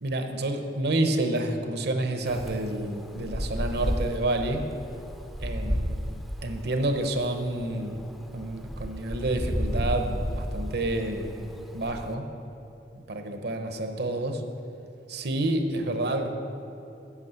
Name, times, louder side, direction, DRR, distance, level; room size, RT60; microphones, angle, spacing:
voice 1, 0.0-4.7 5.4-6.1 6.4-8.0 8.3-11.5 11.7-12.3 12.9-14.4 15.1-16.3, right 2 dB, 65° right, 6 dB, 0.8 m, -29 dB
Wind, 2.3-12.1, equal, ahead, 0.5 m, -33 dB
8.4 x 6.2 x 7.6 m, 2.9 s
head